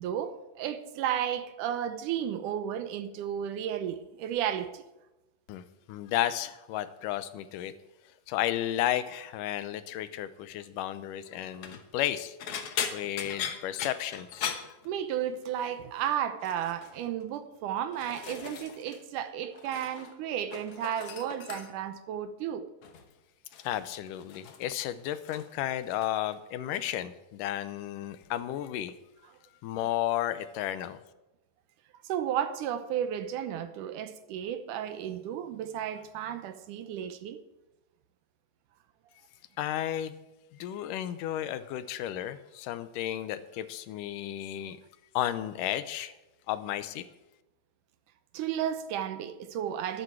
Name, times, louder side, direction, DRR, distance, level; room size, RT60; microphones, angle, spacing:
voice 1, 0.0-4.8 14.9-22.7 32.0-37.4 48.3-50.0, right 10 dB, 80° right, 2.3 m, -33 dB
voice 2, 5.9-7.7 8.3-12.4 12.9-14.5 23.6-28.9 29.6-31.0 39.6-40.2 40.5-44.8 45.1-46.1 46.5-47.1, left 12 dB, 90° left, 2.3 m, -33 dB
sound 1, 11.4-11.8 12.4-15.4 15.7-16.1 16.4-16.9 17.6-19.0 19.3-20.1 20.4-21.9 22.8-23.1 23.5-25.6 25.8-26.4 26.7-27.0 28.2-28.3, left 7 dB, 60° left, 1.7 m, -39 dB
12.5 x 12.0 x 4.6 m
omnidirectional pair, 3.8 m